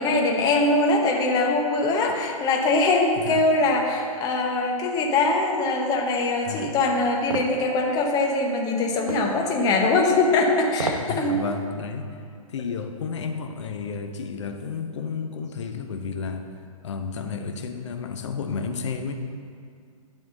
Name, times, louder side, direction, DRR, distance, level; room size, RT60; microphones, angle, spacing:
voice 1, 0.0-11.4, left 2 dB, 20° left, 1 dB, 0.9 m, -22 dB
voice 2, 3.2-3.5 6.5-6.7 11.0-12.2 12.5-16.5 16.8-19.1, left 5 dB, 50° left, 6 dB, 0.8 m, -32 dB
sound 1, 7.3-7.6 9.1-9.3 10.7-11.1 11.5-11.6, right 2 dB, 75° right, 0.8 m, -29 dB
9.5 x 3.6 x 6.8 m, 2.3 s
figure-of-eight pair, 120°, 19 cm